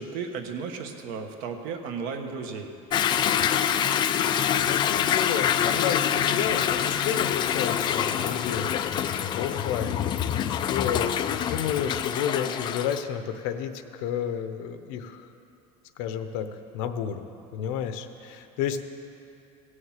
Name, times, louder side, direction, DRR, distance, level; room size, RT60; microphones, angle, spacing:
voice 1, 0.0-2.7, right 5 dB, 65° right, 5 dB, 1.3 m, -34 dB
Toilet flush / Drip / Trickle dribble, 2.9-13.0, left 9 dB, 30° left, 0.4 m, -26 dB
voice 2, 4.6-8.8 9.4-10.0 10.5-15.2 16.0-16.5 16.7-17.2 17.5-18.8, left 8 dB, 75° left, 9 dB, 0.9 m, -31 dB
17.0 x 6.5 x 7.4 m, 2.8 s
cardioid pair, 170°, 16 cm